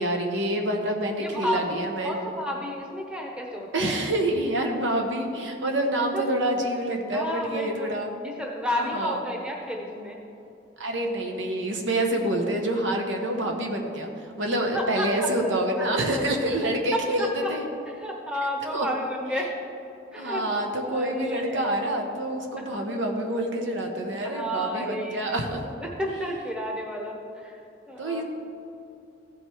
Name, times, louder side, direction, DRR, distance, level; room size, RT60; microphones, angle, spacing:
voice 1, 0.0-2.2 3.7-8.1 8.8-9.2 10.8-17.7 18.7-18.9 20.2-25.6 28.0-28.2, right 1 dB, 75° right, 2 dB, 1.1 m, -27 dB
voice 2, 1.2-4.0 6.1-6.3 7.1-7.9 8.2-10.2 14.7-15.5 15.8-16.2 16.6-17.5 17.8-19.5 20.1-21.8 22.6-22.8 24.2-25.4 25.8-27.6 27.9-28.2, equal, 5° right, 0 dB, 0.9 m, -32 dB
15.0 x 5.3 x 4.5 m, 2.7 s
head